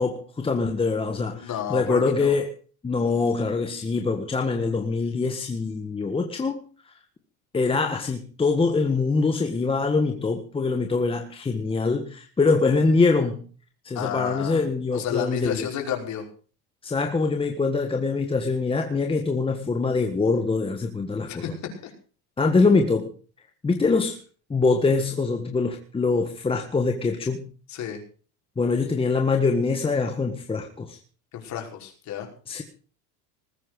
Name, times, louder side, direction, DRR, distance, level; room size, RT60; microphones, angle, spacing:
voice 1, 0.0-2.5 2.8-6.6 6.9-7.0 7.5-13.4 13.8-15.7 16.8-21.5 22.4-23.1 23.6-24.2 24.5-27.5 28.6-31.0 32.5-32.6, left 4 dB, 10° left, 4 dB, 1.5 m, -24 dB
voice 2, 1.3-2.4 14.0-14.6 14.9-16.3 21.3-21.5 21.8-21.9 27.7-28.0 31.3-32.3, left 9 dB, 40° left, 2 dB, 5.3 m, -31 dB
20.0 x 9.1 x 6.4 m, 0.41 s
supercardioid pair, 135°, 43 cm